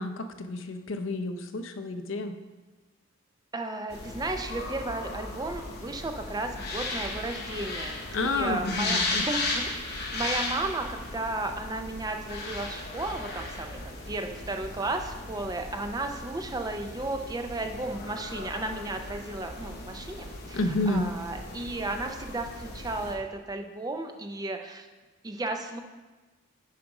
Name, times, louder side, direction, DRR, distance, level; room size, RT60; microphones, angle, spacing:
voice 1, 0.0-2.3 8.1-9.2 20.5-21.0, left 2 dB, 65° left, 8 dB, 0.5 m, -30 dB
voice 2, 3.5-9.7 10.1-24.9 25.2-25.8, right 2 dB, 20° right, 5 dB, 0.4 m, -34 dB
sound 1, 3.9-23.1, left 2 dB, 50° left, 1.0 m, -36 dB
7.3 x 5.0 x 4.8 m, 1.2 s
head